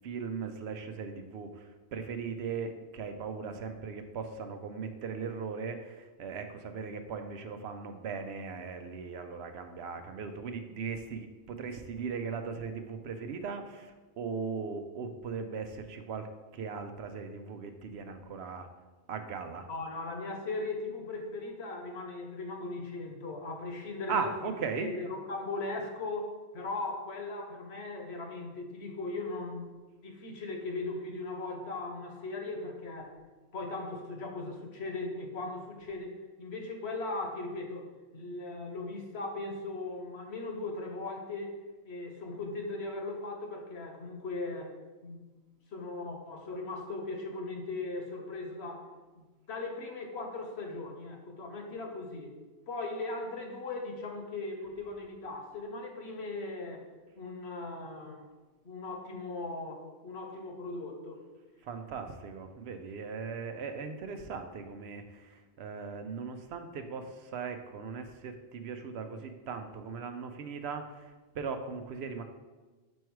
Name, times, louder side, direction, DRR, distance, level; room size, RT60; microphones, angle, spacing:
voice 1, 0.0-18.7 19.1-19.7 24.1-24.9 61.6-72.2, right 5 dB, 75° right, 7 dB, 0.8 m, -38 dB
voice 2, 19.7-24.3 24.8-29.7 30.0-33.2 33.5-37.8 38.1-41.6 41.8-44.7 45.0-45.2 45.7-48.9 49.5-52.3 52.7-56.8 57.2-58.3 58.6-61.2, left 2 dB, 75° left, 3 dB, 1.2 m, -38 dB
5.3 x 4.7 x 4.6 m, 1.2 s
omnidirectional pair, 1.1 m